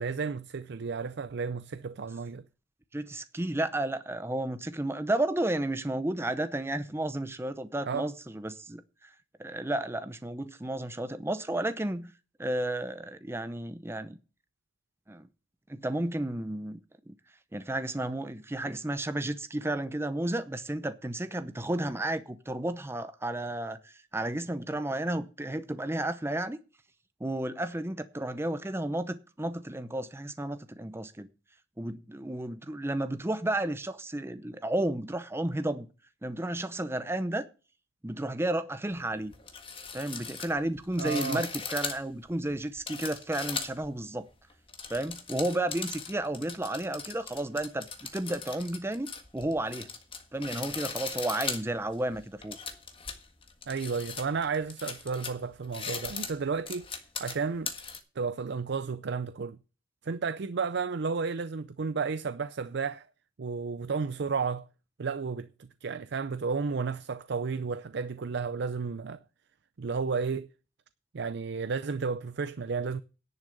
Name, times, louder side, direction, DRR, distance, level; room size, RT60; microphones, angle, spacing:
voice 1, 0.0-2.4 7.8-8.1 41.0-41.5 53.7-56.9 57.2-57.7 58.2-59.6 60.0-63.1 63.4-64.7 65.0-69.2 69.8-70.5 71.1-73.0, right 5 dB, 60° right, 0.5 m, -32 dB
voice 2, 2.9-9.1 9.4-12.1 12.4-14.2 15.1-15.3 15.7-16.8 17.1-17.2 17.5-26.6 27.2-31.3 31.8-35.9 36.2-37.5 38.0-39.3 39.9-44.3 44.9-49.9 50.3-52.6, right 1 dB, 15° right, 0.7 m, -32 dB
sound 1, 38.9-39.0 39.3-43.9 44.5-58.0, left 5 dB, 30° left, 1.6 m, -39 dB
10.5 x 6.3 x 7.8 m
head